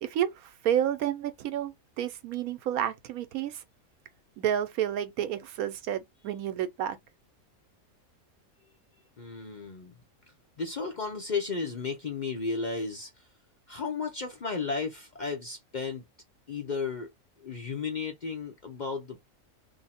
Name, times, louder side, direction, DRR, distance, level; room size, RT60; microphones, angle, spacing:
voice 1, 0.0-3.6 4.4-7.0, right 10 dB, 80° right, 1.1 m, -30 dB
voice 2, 9.2-9.9 10.6-13.3 13.7-16.0 16.5-17.1 17.4-19.3, left 4 dB, 45° left, 0.6 m, -34 dB
2.7 x 2.6 x 4.1 m
omnidirectional pair, 1.5 m